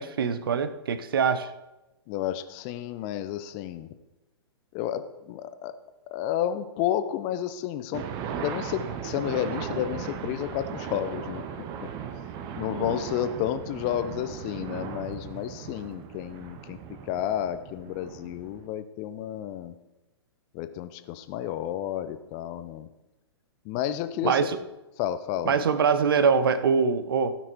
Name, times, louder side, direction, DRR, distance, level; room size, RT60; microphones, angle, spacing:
voice 1, 0.0-1.5 24.2-24.6 25.4-27.4, right 6 dB, 55° right, 13 dB, 0.9 m, -23 dB
voice 2, 2.1-3.9 4.7-5.7 6.1-8.0 8.3-11.4 11.8-11.9 12.5-16.8 17.1-19.7 20.5-22.9 23.6-24.4 25.0-25.5, left 11 dB, 30° left, 11 dB, 0.7 m, -31 dB
sound 1, 7.9-18.7, right 8 dB, 25° right, 0.8 m, -37 dB
16.0 x 6.1 x 4.6 m, 1.0 s
figure-of-eight pair, 115°, 14 cm